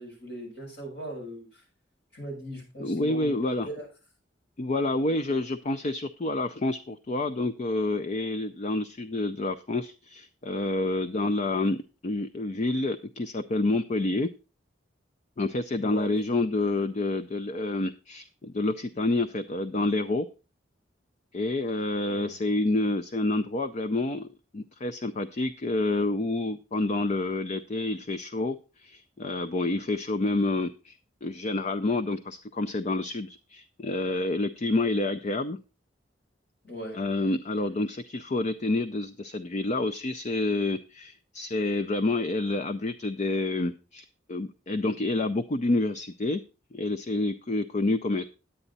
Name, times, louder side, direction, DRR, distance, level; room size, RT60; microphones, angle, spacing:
voice 1, 0.0-1.6 2.1-3.9 15.7-16.1 22.1-22.3 36.6-37.0, right 1 dB, 80° left, -1 dB, 6.7 m, -39 dB
voice 2, 2.8-3.7 4.6-11.8 12.0-14.3 15.4-20.3 21.3-24.3 24.5-35.6 36.9-46.4 46.7-48.3, left 2 dB, 40° left, 9 dB, 0.5 m, -28 dB
9.9 x 9.0 x 4.0 m, 0.31 s
head